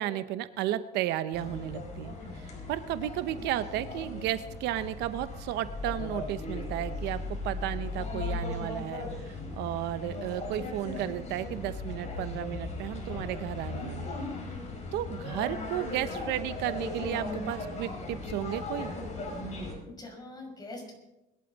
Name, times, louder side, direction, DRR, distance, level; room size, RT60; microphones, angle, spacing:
voice 1, 0.0-14.1 14.9-18.9, right 13 dB, 90° right, 12 dB, 0.8 m, -33 dB
sound 1, 1.3-19.7, left 3 dB, 40° left, 5.1 m, -37 dB
voice 2, 19.6-21.0, left 2 dB, 25° left, 0 dB, 5.8 m, -44 dB
21.5 x 11.5 x 4.0 m, 0.96 s
cardioid pair, 110°, 17 cm